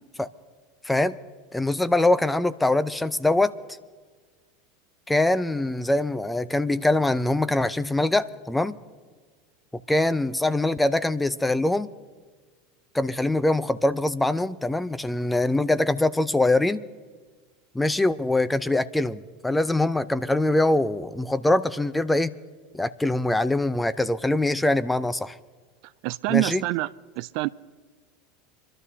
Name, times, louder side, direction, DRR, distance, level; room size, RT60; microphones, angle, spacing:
voice 1, 1.5-3.6 5.1-8.8 9.9-11.9 12.9-16.8 17.7-22.3 22.7-25.4 26.3-26.6, left 2 dB, 5° left, 0.6 m, -23 dB
voice 2, 26.0-26.9 27.2-27.5, right 21 dB, 55° right, 0.3 m, -25 dB
27.0 x 12.0 x 2.8 m
figure-of-eight pair, 80°, 0 cm